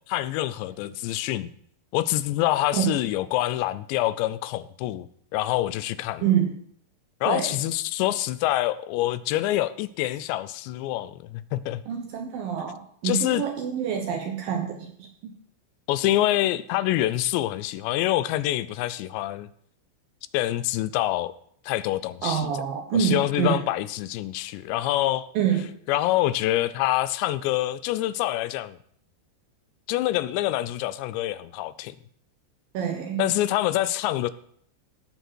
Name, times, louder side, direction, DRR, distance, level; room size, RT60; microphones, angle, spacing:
voice 1, 0.0-1.5 1.9-6.2 7.2-11.8 13.0-13.4 15.9-19.5 20.3-21.3 21.7-22.5 22.9-25.3 25.9-28.8 29.9-32.0 33.2-34.3, left 15 dB, 85° left, 15 dB, 2.7 m, -26 dB
voice 2, 6.2-6.5 7.3-7.6 11.9-14.9 22.2-23.6 25.3-25.7 32.7-33.2, right 8 dB, 70° right, 4 dB, 2.2 m, -26 dB
17.0 x 6.6 x 4.6 m, 0.62 s
omnidirectional pair, 5.1 m